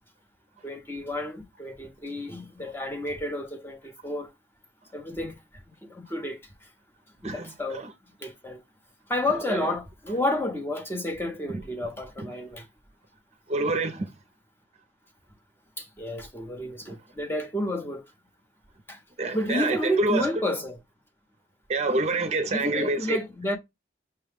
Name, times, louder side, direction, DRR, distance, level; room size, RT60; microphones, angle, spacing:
voice 1, 0.6-4.3 4.9-5.4 5.7-6.7 7.2-7.9 8.2-8.6 9.1-12.7 15.8-18.1 18.9-19.0 19.3-20.8 22.5-23.6, left 1 dB, 10° left, 0.7 m, -31 dB
voice 2, 13.5-14.1 19.2-20.2 21.7-23.2, right 2 dB, 35° right, 0.5 m, -26 dB
5.6 x 2.2 x 3.3 m
head